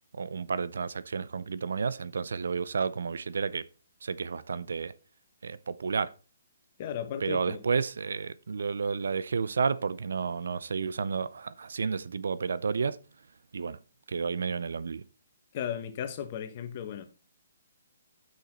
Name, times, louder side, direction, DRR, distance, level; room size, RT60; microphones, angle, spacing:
voice 1, 0.1-3.7 4.0-4.9 5.4-6.1 7.2-13.0 13.5-13.8 14.1-15.0, right 5 dB, 75° right, 0.5 m, -31 dB
voice 2, 6.8-7.6 15.5-17.0, left 9 dB, 40° left, 1.3 m, -35 dB
8.3 x 6.4 x 4.3 m
hypercardioid pair, 140°, 0 cm